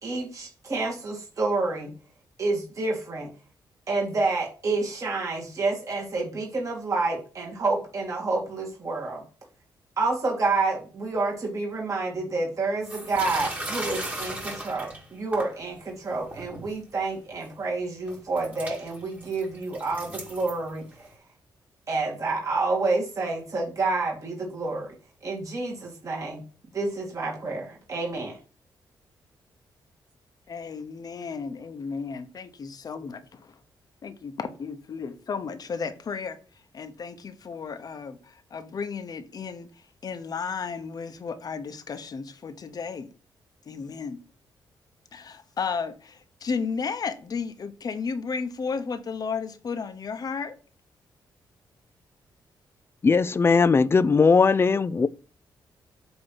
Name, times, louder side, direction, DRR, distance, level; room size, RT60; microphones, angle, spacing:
voice 1, 0.0-1.9 2.4-3.3 3.9-9.2 10.0-20.8 21.9-24.9 25.2-26.4 26.7-28.4, right 3 dB, 40° right, 2.2 m, -28 dB
sound 1, 12.8-15.6 16.1-16.7 17.4-17.5 18.1-21.1, right 1 dB, 20° right, 1.8 m, -37 dB
voice 2, 30.5-33.5 34.0-36.4 36.7-39.7 40.0-43.1 43.7-44.2 45.1-50.6, left 5 dB, 50° left, 1.0 m, -33 dB
voice 3, 53.0-55.1, left 4 dB, 30° left, 0.4 m, -19 dB
8.0 x 3.1 x 5.6 m
cardioid pair, 80°, 8 cm